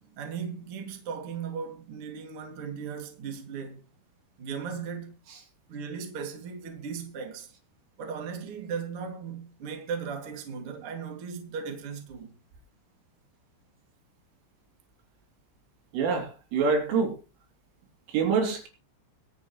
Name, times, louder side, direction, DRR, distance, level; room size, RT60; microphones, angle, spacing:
voice 1, 0.2-3.8 4.4-5.2 5.7-7.5 8.0-12.3, right 6 dB, 40° right, 2.4 m, -37 dB
voice 2, 15.9-17.2 18.1-18.7, right 5 dB, 75° right, 5.7 m, -26 dB
22.5 x 8.6 x 3.2 m
omnidirectional pair, 5.8 m